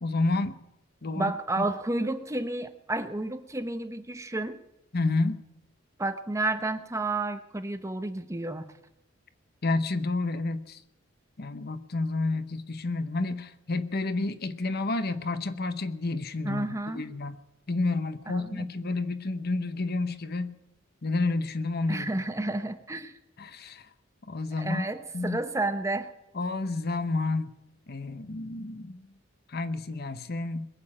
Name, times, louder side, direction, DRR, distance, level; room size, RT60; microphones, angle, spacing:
voice 1, 0.0-0.6 1.0-1.3 1.6-1.7 4.9-5.4 9.6-10.8 11.4-17.4 17.7-20.6 21.0-22.1 23.4-23.9 24.3-24.9 25.1-25.4 26.3-27.5 27.9-29.1 29.5-30.7, left 3 dB, 50° left, 12 dB, 0.9 m, -30 dB
voice 2, 1.1-4.6 6.0-8.7 16.4-17.1 18.3-18.7 21.9-23.1 24.6-26.1, right 2 dB, 15° right, 9 dB, 0.9 m, -31 dB
21.5 x 7.2 x 8.6 m, 0.90 s
head